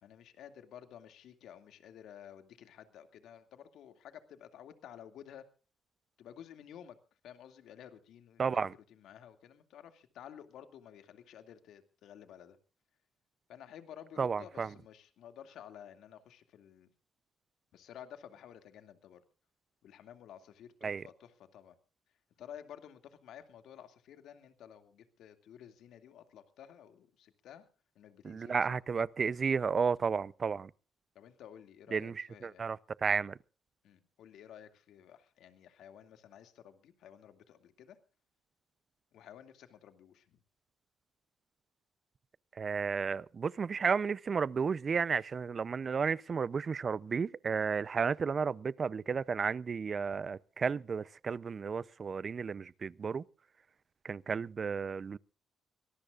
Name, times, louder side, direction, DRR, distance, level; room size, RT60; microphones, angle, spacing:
voice 1, 0.0-5.5 6.2-7.0 7.2-8.4 8.9-12.6 13.5-16.9 17.7-19.2 19.8-21.7 22.4-27.6 28.0-28.8 31.1-32.6 33.8-38.0 39.1-40.4, left 9 dB, 80° left, 2.4 m, -53 dB
voice 2, 8.4-8.7 14.2-14.7 20.8-21.0 28.2-30.7 31.9-33.4 42.6-53.2 54.0-55.2, right 5 dB, 40° right, 0.6 m, -33 dB
24.5 x 18.5 x 2.5 m
cardioid pair, 90°, 0 cm